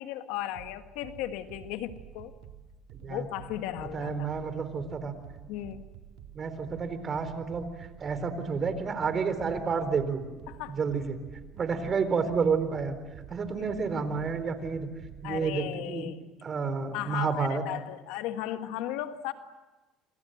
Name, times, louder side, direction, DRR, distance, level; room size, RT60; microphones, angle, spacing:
voice 1, 0.0-2.3 3.0-4.3 5.5-5.9 10.5-10.8 13.6-13.7 15.2-16.2 16.9-19.3, left 13 dB, 85° left, 8 dB, 1.7 m, -36 dB
sound 1, 0.6-15.6, right 10 dB, 80° right, 3.2 m, -49 dB
voice 2, 3.8-5.1 6.3-10.2 10.7-11.2 11.5-13.0 13.3-14.9 15.2-16.1 16.4-17.6, right 5 dB, 35° right, 11 dB, 3.9 m, -30 dB
27.5 x 25.5 x 7.9 m, 1.2 s
cardioid pair, 105°, 0 cm